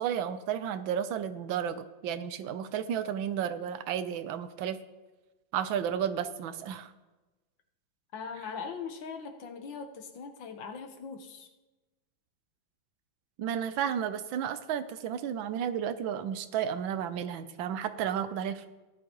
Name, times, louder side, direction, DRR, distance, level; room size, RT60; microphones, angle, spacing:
voice 1, 0.0-4.8 5.5-6.9 13.4-18.7, right 8 dB, 80° right, 11 dB, 1.4 m, -32 dB
voice 2, 8.1-11.5, left 5 dB, 75° left, 6 dB, 1.8 m, -40 dB
16.5 x 11.0 x 3.0 m, 1.1 s
omnidirectional pair, 2.1 m